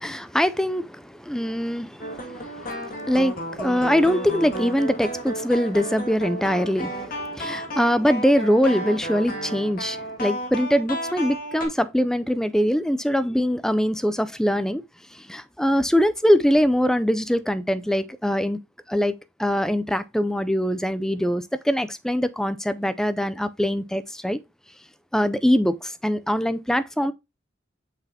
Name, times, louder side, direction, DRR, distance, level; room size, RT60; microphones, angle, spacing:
voice 1, 0.0-14.8 15.1-18.6 18.9-24.4 25.1-27.1, equal, 5° left, 0.4 m, -23 dB
sound 1, 2.0-11.7, right 1 dB, 50° left, 2.0 m, -32 dB
6.6 x 6.0 x 2.8 m
head